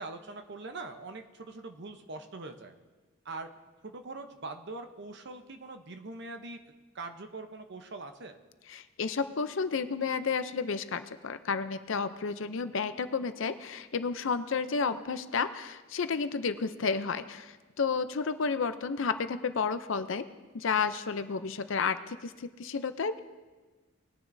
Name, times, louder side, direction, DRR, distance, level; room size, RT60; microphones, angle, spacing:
voice 1, 0.0-2.7 3.2-3.5 3.8-6.6 6.9-8.4, right 3 dB, 55° right, 6 dB, 0.8 m, -42 dB
voice 2, 8.7-20.3 20.5-23.2, left 5 dB, 60° left, 11 dB, 0.5 m, -31 dB
20.0 x 10.0 x 2.7 m, 1.3 s
head